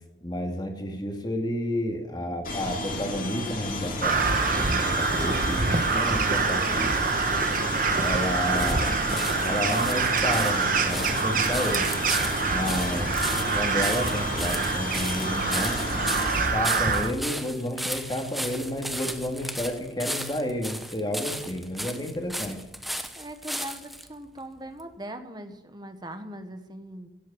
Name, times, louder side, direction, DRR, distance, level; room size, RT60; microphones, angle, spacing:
voice 1, 0.2-4.3 4.9-7.0 7.9-9.0 9.4-11.9 12.5-15.8 16.5-22.6, left 1 dB, 20° left, 3 dB, 2.2 m, -31 dB
sound 1, 2.4-16.5, left 1 dB, 45° left, 3.2 m, -32 dB
Crow, 4.0-17.1, right 4 dB, 45° right, 1.3 m, -26 dB
sound 2, 7.6-24.1 24.8-24.9, equal, ahead, 0.9 m, -36 dB
voice 2, 23.2-27.1, right 1 dB, 20° right, 8 dB, 1.3 m, -40 dB
16.5 x 8.4 x 8.9 m, 0.92 s
head